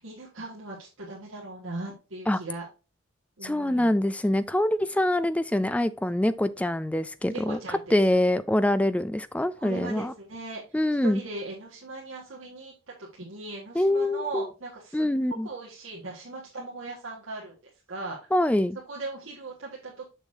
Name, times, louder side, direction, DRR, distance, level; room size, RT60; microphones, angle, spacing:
voice 1, 0.0-2.7 3.4-3.9 7.3-8.2 9.6-10.6 11.0-12.7 13.0-15.1 15.4-17.6 17.9-18.2 18.9-20.0, right 3 dB, 80° right, 1.7 m, -38 dB
voice 2, 3.4-7.6 7.9-10.1 10.7-11.2 13.8-14.4 14.9-15.5 18.3-18.8, left 1 dB, 5° left, 0.3 m, -24 dB
6.7 x 6.4 x 2.7 m
head